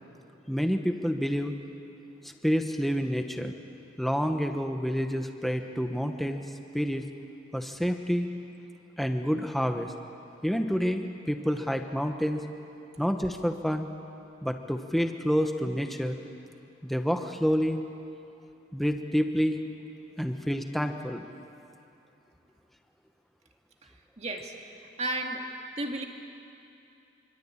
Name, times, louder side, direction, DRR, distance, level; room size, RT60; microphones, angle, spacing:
voice 1, 0.5-1.5 2.2-3.5 4.0-6.4 6.7-7.0 7.5-8.3 9.0-9.9 10.4-12.4 13.0-13.9 14.4-16.2 16.8-17.8 18.7-19.6 20.2-21.3, equal, ahead, 5 dB, 1.1 m, -28 dB
voice 2, 24.2-24.5 25.0-25.4 25.8-26.0, right 2 dB, 35° right, 2 dB, 2.2 m, -32 dB
26.0 x 25.0 x 8.7 m, 2.7 s
head